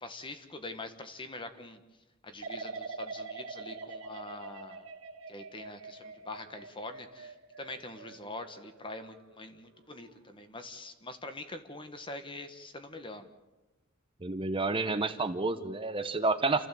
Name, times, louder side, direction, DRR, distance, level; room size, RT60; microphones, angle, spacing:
voice 1, 0.0-1.8 2.2-4.8 5.3-13.3, left 2 dB, 25° left, 8 dB, 1.6 m, -44 dB
sound 1, 2.4-9.4 9.8-10.2, right 3 dB, 80° right, 2.2 m, -44 dB
voice 2, 14.2-16.7, right 3 dB, 25° right, 8 dB, 0.9 m, -30 dB
28.5 x 14.5 x 7.7 m, 1.1 s
head